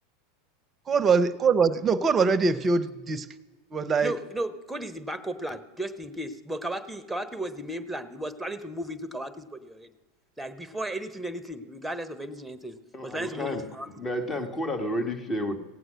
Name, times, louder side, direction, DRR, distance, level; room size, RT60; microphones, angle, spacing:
voice 1, 0.9-3.3 3.7-4.2, right 5 dB, 30° right, 17 dB, 0.8 m, -23 dB
voice 2, 4.0-9.9 10.4-12.8 13.0-13.9, right 1 dB, 5° right, 12 dB, 1.1 m, -35 dB
voice 3, 12.9-15.6, left 1 dB, 20° left, 6 dB, 1.5 m, -31 dB
17.5 x 7.9 x 6.3 m, 1.3 s
hypercardioid pair, 90°, 0 cm